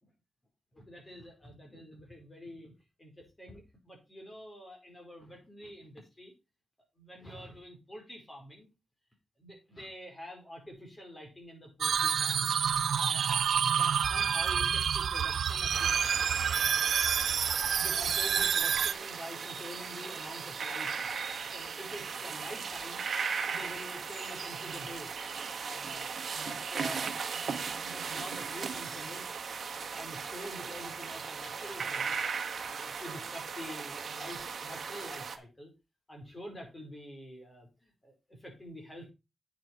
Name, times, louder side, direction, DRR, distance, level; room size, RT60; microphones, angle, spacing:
voice 1, 0.7-2.7 3.0-6.3 7.0-8.7 9.4-12.5 12.9-16.3 17.7-20.9 21.5-23.0 23.5-25.1 25.6-26.0 26.3-27.4 27.8-29.3 29.9-32.2 32.6-35.7 36.1-39.1, equal, 20° left, 1 dB, 4.8 m, -47 dB
sound 1, 11.8-18.9, right 7 dB, 80° right, 0.5 m, -28 dB
sound 2, 15.7-35.4, right 5 dB, 65° right, 1.3 m, -37 dB
8.9 x 7.3 x 4.5 m, 0.26 s
wide cardioid pair, 130°, 0 cm